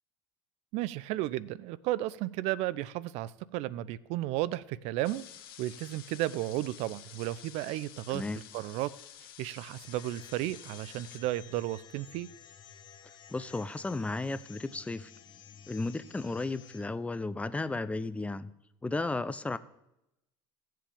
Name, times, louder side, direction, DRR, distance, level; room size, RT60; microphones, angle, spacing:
voice 1, 0.7-5.2 5.6-8.2 8.5-8.9 9.4-12.3, right 15 dB, 65° right, 20 dB, 0.5 m, -33 dB
sound 1, 5.0-11.2, left 10 dB, 85° left, 1.1 m, -51 dB
voice 2, 8.1-8.4 13.3-15.1 15.7-18.5 18.8-19.6, left 3 dB, 10° left, 14 dB, 0.6 m, -34 dB
sound 2, 9.8-16.8, left 8 dB, 40° left, 1.4 m, -53 dB
16.0 x 7.6 x 3.5 m, 0.87 s
supercardioid pair, 90°, 12 cm